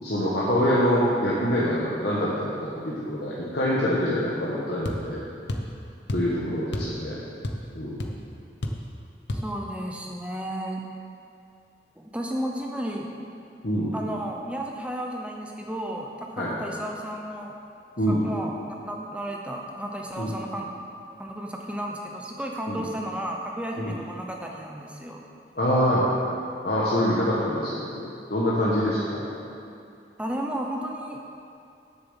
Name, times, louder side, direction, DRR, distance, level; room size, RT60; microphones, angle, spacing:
voice 1, 0.0-5.2 6.1-7.2 7.7-8.0 13.6-14.0 16.4-16.5 18.0-18.3 20.2-20.3 22.7-22.8 23.8-24.0 25.6-26.1 26.6-29.2, equal, 60° left, -8 dB, 1.4 m, -25 dB
sound 1, 4.8-5.0 5.5-5.7 6.1-6.3 6.7-7.0 7.2-7.7 8.0-8.1 8.6-8.9 9.3-9.5, left 1 dB, 85° left, 0.8 m, -30 dB
voice 2, 9.3-10.8 12.0-13.1 13.9-17.5 18.1-20.7 21.2-25.2 30.2-31.2, right 1 dB, 5° right, 0 dB, 0.7 m, -33 dB
7.5 x 7.0 x 7.3 m, 2.5 s
head